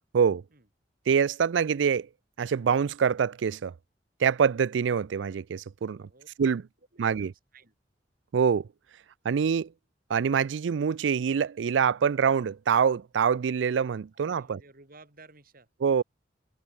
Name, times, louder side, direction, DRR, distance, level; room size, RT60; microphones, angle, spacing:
voice 1, 1.1-2.1 2.4-3.7 4.2-6.1 6.4-6.6 7.0-7.3 8.3-8.7 9.2-9.7 10.1-14.6 15.8-16.0, right 6 dB, 90° right, 0.4 m, -25 dB
voice 2, 5.9-6.3 6.9-7.7 14.1-15.7, right 3 dB, 55° right, 5.1 m, -55 dB
head